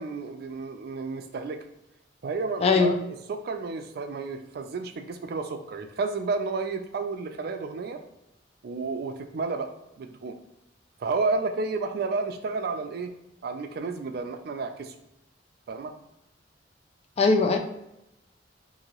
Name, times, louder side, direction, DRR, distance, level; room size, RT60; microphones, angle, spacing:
voice 1, 0.0-1.6 2.2-2.9 3.3-8.0 8.6-9.7 10.0-10.4 11.0-13.1 13.4-14.9 15.7-15.9, right 4 dB, 55° right, 6 dB, 0.3 m, -31 dB
voice 2, 2.6-3.0 17.2-17.6, left 4 dB, 35° left, 5 dB, 0.3 m, -20 dB
2.8 x 2.6 x 2.9 m, 0.87 s
head